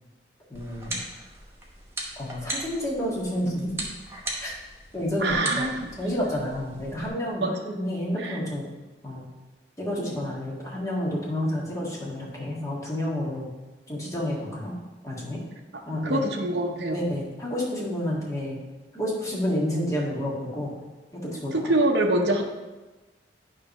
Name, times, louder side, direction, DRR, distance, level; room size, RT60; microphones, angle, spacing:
voice 1, 0.5-1.0 2.2-3.8 4.4-4.5 4.9-5.6 6.0-8.6 9.0-9.2 9.8-13.5 13.9-14.7 15.0-15.4 15.8-16.3 16.9-18.6 18.9-20.7 21.1-21.7, left 1 dB, 20° left, -5 dB, 1.7 m, -29 dB
sound 1, 0.5-7.1, right 2 dB, 15° right, 1.1 m, -38 dB
voice 2, 5.2-5.9 7.4-7.6 8.2-8.4 16.0-17.0 21.5-22.4, right 1 dB, 65° right, 1 dB, 0.8 m, -24 dB
9.1 x 3.3 x 5.5 m, 1.2 s
head